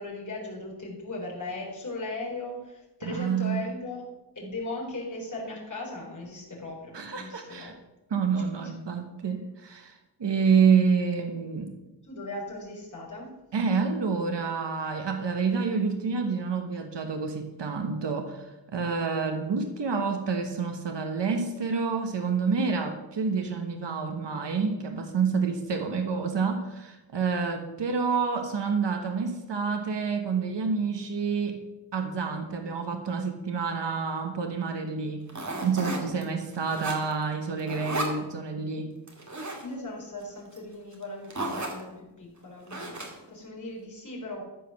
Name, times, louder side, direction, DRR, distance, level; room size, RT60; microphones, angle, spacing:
voice 1, 0.0-4.0 4.4-7.7 12.0-13.3 36.1-36.2 39.6-43.0 43.3-44.4, left 2 dB, 45° left, -4 dB, 3.8 m, -38 dB
voice 2, 3.0-3.6 6.9-7.7 8.1-11.7 13.5-18.5 18.7-31.6 31.9-35.3 35.6-38.9, right 5 dB, 80° right, 4 dB, 1.3 m, -28 dB
sound 1, 35.3-36.2 36.5-37.2 37.6-38.2 39.1-39.6 40.6-40.7 40.9-41.0 41.3-41.8 42.7-43.3, right 2 dB, 40° right, 2.1 m, -34 dB
14.0 x 5.0 x 6.4 m, 1.0 s
wide cardioid pair, 105°, 42 cm